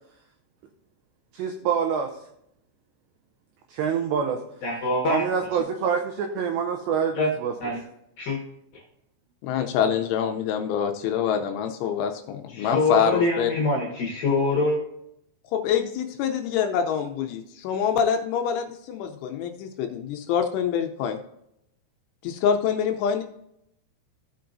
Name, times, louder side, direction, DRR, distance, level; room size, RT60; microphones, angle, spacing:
voice 1, 1.3-2.2 3.7-4.4 5.1-7.5, right 7 dB, 90° right, 5 dB, 2.4 m, -26 dB
voice 2, 4.6-5.3 5.5-5.6 7.2-7.3 7.6-7.8 8.2-8.4 12.5-14.8, left 2 dB, 65° left, 0 dB, 2.3 m, -24 dB
voice 3, 9.4-13.5 15.5-21.2 22.2-23.2, left 8 dB, 80° left, 5 dB, 2.9 m, -25 dB
15.5 x 5.7 x 2.6 m, 0.78 s
omnidirectional pair, 5.9 m